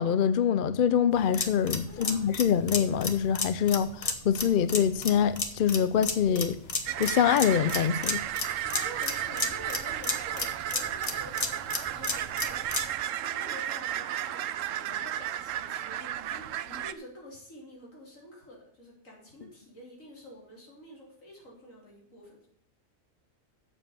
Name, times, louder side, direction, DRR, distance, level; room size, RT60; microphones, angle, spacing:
voice 1, 0.0-6.6 7.0-8.2, left 8 dB, 55° left, 0.6 m, -25 dB
sound 1, 1.1-13.0, left 3 dB, 30° left, 1.1 m, -33 dB
voice 2, 1.8-2.3 8.6-12.9 13.2-22.5, equal, 70° left, 4.0 m, -48 dB
sound 2, 6.9-16.9, right 11 dB, 75° right, 0.9 m, -33 dB
8.0 x 7.0 x 7.2 m
omnidirectional pair, 1.4 m